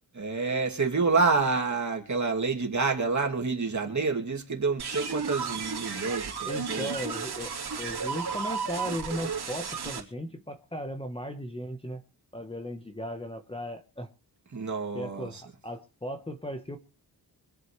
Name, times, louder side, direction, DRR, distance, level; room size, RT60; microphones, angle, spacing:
voice 1, 0.2-6.9 14.5-15.4, right 4 dB, 45° right, 2 dB, 2.5 m, -28 dB
sound 1, 4.8-10.0, right 5 dB, 65° right, 2.9 m, -33 dB
voice 2, 6.5-7.5 7.8-12.0 12.3-14.1 14.9-16.8, equal, 15° left, 6 dB, 1.0 m, -36 dB
24.5 x 8.8 x 3.2 m, 0.37 s
wide cardioid pair, 150°, 42 cm